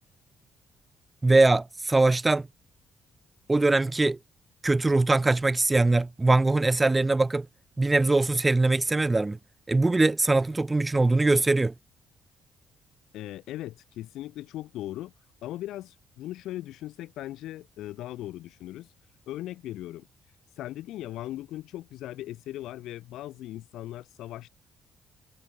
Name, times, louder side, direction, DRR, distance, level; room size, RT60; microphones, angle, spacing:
voice 1, 1.2-2.5 3.5-4.2 4.6-7.5 7.8-9.4 9.7-11.7, right 2 dB, 20° right, 4.4 m, -22 dB
voice 2, 13.1-15.1 15.4-18.9 19.3-20.1 20.6-24.5, left 14 dB, 85° left, 5.8 m, -38 dB
cardioid pair, 90°, 0 cm